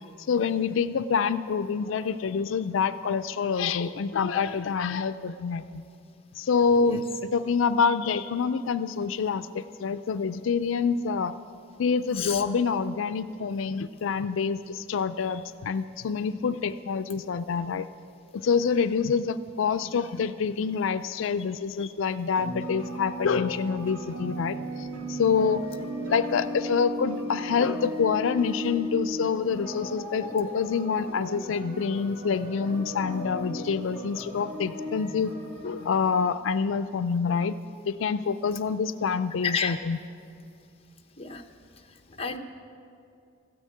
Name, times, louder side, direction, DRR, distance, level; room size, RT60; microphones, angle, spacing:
voice 1, 0.3-5.8 6.3-7.1 7.3-11.3 11.8-17.9 18.3-25.7 26.1-35.3 35.6-37.6 37.9-40.0, left 5 dB, 85° left, 12 dB, 0.4 m, -27 dB
sound 1, 22.4-36.1, equal, 85° right, 2.8 m, -36 dB
voice 2, 39.4-39.8 41.2-41.4 42.2-42.4, left 6 dB, 30° left, 6 dB, 0.8 m, -30 dB
13.5 x 10.0 x 8.5 m, 2.5 s
head